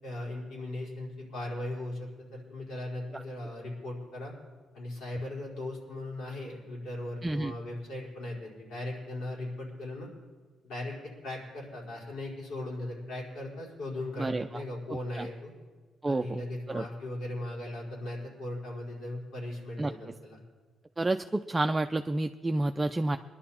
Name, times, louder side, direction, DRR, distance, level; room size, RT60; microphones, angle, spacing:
voice 1, 0.0-4.3 4.7-10.1 10.6-10.9 11.2-15.5 16.1-20.4, left 1 dB, 80° left, -4 dB, 4.9 m, -38 dB
voice 2, 7.2-7.5 14.2-14.5 15.1-15.3 16.0-16.4 16.7-16.8 19.8-19.9 21.0-23.2, right 2 dB, 20° right, 6 dB, 0.5 m, -29 dB
21.0 x 11.0 x 4.3 m, 1.4 s
cardioid pair, 90°, 0 cm